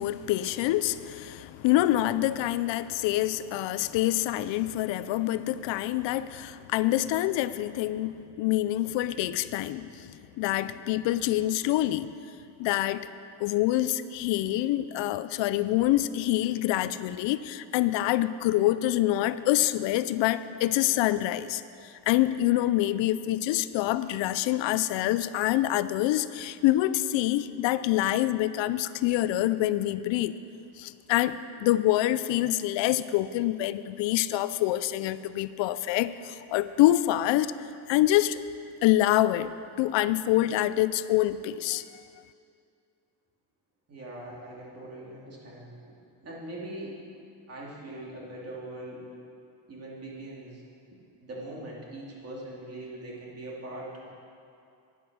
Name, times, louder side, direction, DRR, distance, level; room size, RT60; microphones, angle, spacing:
voice 1, 0.0-12.1 12.6-13.1 13.4-30.3 30.8-37.5 37.9-38.4 38.8-39.5 39.8-41.8, left 14 dB, 85° left, 14 dB, 0.6 m, -26 dB
voice 2, 43.9-47.0 47.5-49.1 49.7-50.6 50.9-54.1, right 1 dB, 35° right, -4 dB, 2.7 m, -41 dB
11.0 x 10.0 x 6.1 m, 2.5 s
cardioid pair, 150°, 44 cm